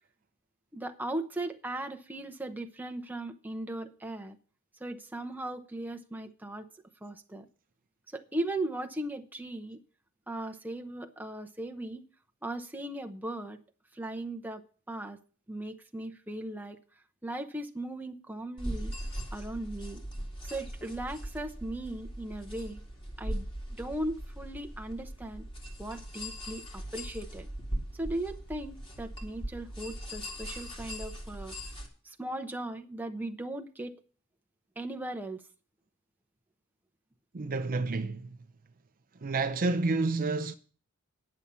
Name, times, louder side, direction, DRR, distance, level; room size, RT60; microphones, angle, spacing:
voice 1, 0.7-4.4 4.8-6.7 7.0-7.5 8.1-9.8 10.3-12.0 12.4-13.6 13.9-14.6 14.9-15.2 15.5-16.8 17.2-18.9 19.3-20.0 20.4-22.8 23.2-23.5 23.8-25.5 25.8-27.5 27.9-31.5 32.0-34.0 34.8-35.4, right 1 dB, 10° right, 0.8 m, -38 dB
sound 1, 18.6-31.9, equal, 25° left, 2.2 m, -40 dB
voice 2, 37.3-38.3 39.2-40.6, right 3 dB, 40° right, 0.5 m, -29 dB
9.9 x 7.3 x 6.8 m
head